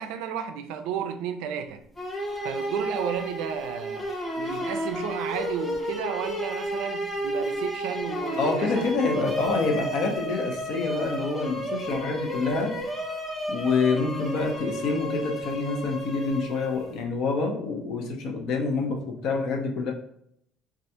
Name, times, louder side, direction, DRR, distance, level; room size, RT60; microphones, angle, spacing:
voice 1, 0.0-1.8 2.4-4.1 4.4-9.1, right 8 dB, 85° right, 0.3 m, -33 dB
sound 1, 2.0-17.0, equal, 5° left, 0.6 m, -32 dB
voice 2, 8.4-12.7 13.5-19.9, left 4 dB, 60° left, 0.7 m, -27 dB
3.2 x 2.4 x 2.7 m
cardioid pair, 145°, 0 cm